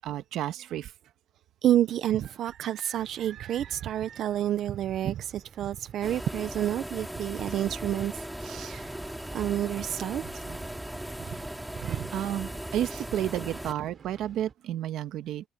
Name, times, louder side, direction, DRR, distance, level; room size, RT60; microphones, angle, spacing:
voice 1, 0.0-0.9 12.1-15.5, right 12 dB, 75° right, 1.4 m, -31 dB
voice 2, 1.6-8.9 9.3-10.7 11.8-12.1 12.9-13.0 13.3-13.5, right 11 dB, 60° right, 0.6 m, -29 dB
sound 1, 2.9-14.5, right 6 dB, 30° right, 4.2 m, -53 dB
sound 2, 6.0-13.7, right 1 dB, 5° right, 2.2 m, -38 dB
cardioid pair, 170°, 0 cm